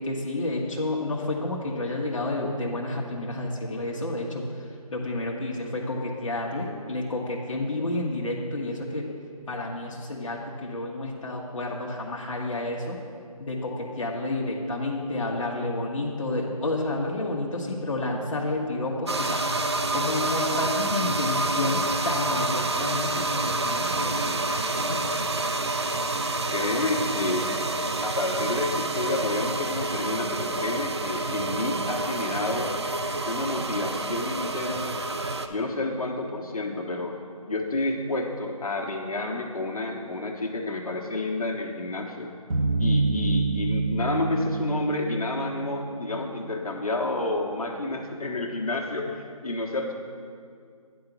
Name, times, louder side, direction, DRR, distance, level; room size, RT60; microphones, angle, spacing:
voice 1, 0.0-9.1 9.5-13.0 13.4-19.4 19.9-25.1, left 2 dB, 55° left, -2 dB, 1.0 m, -30 dB
sound 1, 19.1-35.5, right 2 dB, 45° right, 0.4 m, -28 dB
voice 2, 26.5-27.5 28.0-32.7 33.3-35.0 35.5-37.2 37.5-42.3 42.8-49.9, left 2 dB, 75° left, 0 dB, 1.1 m, -30 dB
sound 2, 42.5-46.2, right 3 dB, 60° right, 1.0 m, -26 dB
9.4 x 3.9 x 5.9 m, 2.2 s
figure-of-eight pair, 175°, 19 cm